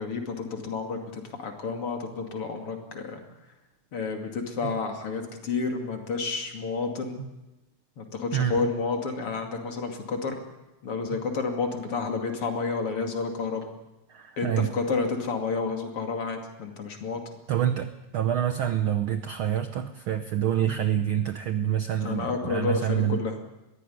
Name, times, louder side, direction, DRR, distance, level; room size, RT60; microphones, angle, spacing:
voice 1, 0.0-3.2 3.9-7.2 8.0-10.4 10.8-13.6 14.4-17.2 22.0-23.5, left 4 dB, 50° left, 3 dB, 3.3 m, -30 dB
voice 2, 8.3-8.7 14.1-14.7 17.5-23.2, right 10 dB, 85° right, 9 dB, 1.1 m, -27 dB
21.5 x 16.0 x 9.5 m, 1.0 s
omnidirectional pair, 3.5 m